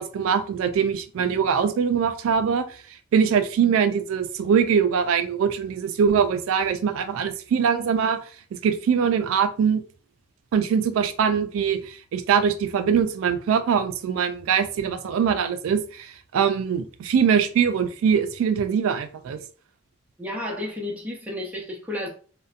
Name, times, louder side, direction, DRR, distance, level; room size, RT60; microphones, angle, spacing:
voice 1, 0.0-2.6 3.1-8.2 8.5-9.8 10.5-19.4, right 7 dB, 85° right, 0.3 m, -22 dB
voice 2, 20.2-22.1, left 1 dB, 5° right, 0.5 m, -32 dB
2.6 x 2.1 x 2.4 m
head